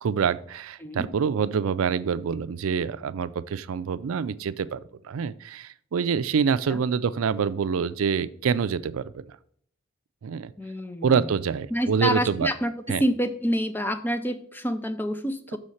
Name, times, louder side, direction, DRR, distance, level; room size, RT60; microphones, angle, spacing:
voice 1, 0.0-4.8 5.0-9.1 10.2-10.5 11.0-12.5 12.9-13.0 15.5-15.6, right 6 dB, 75° right, 15 dB, 0.4 m, -26 dB
voice 2, 10.6-11.1 11.7-15.6, equal, 10° left, 10 dB, 0.5 m, -27 dB
6.3 x 4.2 x 6.4 m, 0.62 s
head